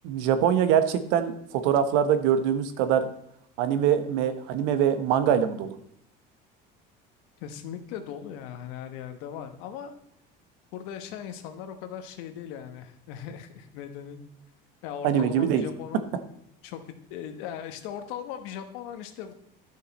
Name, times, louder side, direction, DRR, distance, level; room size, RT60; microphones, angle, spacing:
voice 1, 0.0-3.1 3.6-5.7 15.0-15.7, right 9 dB, 80° right, 10 dB, 1.0 m, -23 dB
voice 2, 7.4-9.9 10.7-14.2 14.8-16.1 16.6-19.3, left 9 dB, 85° left, 8 dB, 1.2 m, -39 dB
12.0 x 6.4 x 4.1 m, 0.74 s
cardioid pair, 150°, 19 cm